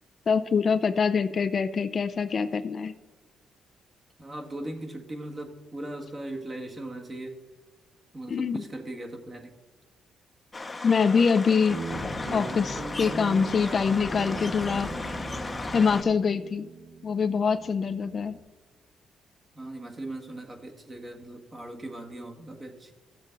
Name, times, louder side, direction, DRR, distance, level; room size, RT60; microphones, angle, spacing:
voice 1, 0.3-2.9 8.3-8.6 10.8-11.8 12.3-15.3 15.7-16.7 17.0-18.4, left 5 dB, 45° left, 10 dB, 0.5 m, -24 dB
voice 2, 4.2-7.4 8.1-9.5 19.5-22.9, right 1 dB, 30° right, 2 dB, 1.7 m, -39 dB
sound 1, 10.5-16.0, left 2 dB, 20° left, 0.9 m, -35 dB
Guitar, 11.7-18.4, right 5 dB, 55° right, 1.6 m, -41 dB
14.5 x 7.3 x 3.9 m, 1.2 s
cardioid pair, 90°, 0 cm